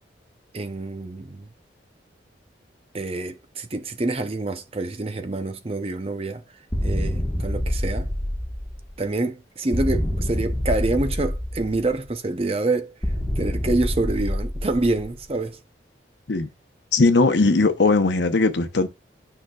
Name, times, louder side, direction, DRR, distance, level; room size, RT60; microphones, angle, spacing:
voice 1, 0.5-1.5 2.9-6.4 6.8-8.1 9.0-12.9 13.4-15.6, right 2 dB, 30° right, 0.6 m, -26 dB
sound 1, 6.7-9.0 9.7-12.0 13.0-15.3, equal, 10° left, 1.3 m, -26 dB
voice 2, 16.9-18.9, left 3 dB, 70° left, 0.8 m, -19 dB
9.1 x 5.8 x 2.3 m
head